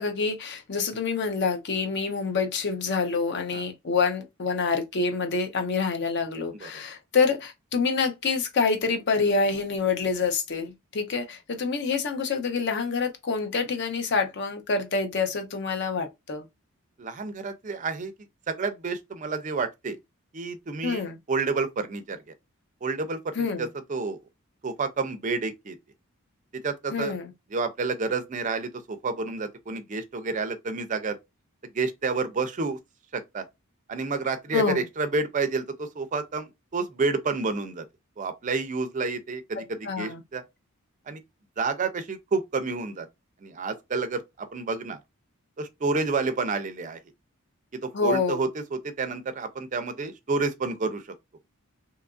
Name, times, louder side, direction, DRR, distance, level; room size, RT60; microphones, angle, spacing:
voice 1, 0.0-16.4 20.8-21.2 23.4-23.7 26.9-27.3 34.5-34.8 39.8-40.2 47.9-48.4, left 4 dB, 50° left, 0.6 m, -27 dB
voice 2, 17.0-18.1 18.5-20.0 20.3-22.2 22.8-24.2 24.6-25.8 26.5-27.1 27.5-31.2 31.7-32.8 33.1-33.4 33.9-37.8 38.2-40.4 41.1-41.2 41.6-43.1 43.4-45.0 45.6-47.0 47.7-51.0, right 4 dB, 35° right, 0.4 m, -29 dB
2.8 x 2.4 x 2.3 m
head